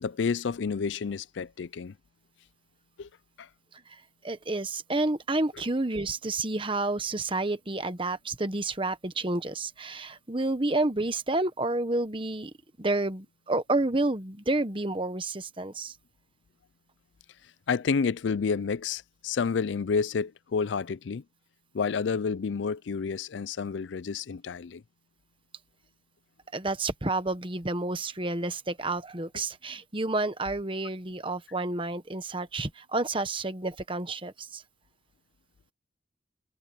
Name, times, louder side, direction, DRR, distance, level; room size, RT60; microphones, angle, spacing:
voice 1, 0.0-2.0 3.0-3.1 3.4-3.5 17.7-21.2 21.7-24.8, left 5 dB, 80° left, 0.4 m, -29 dB
voice 2, 3.9-12.5 12.8-15.9 26.5-34.6, right 2 dB, 30° right, 1.3 m, -30 dB
head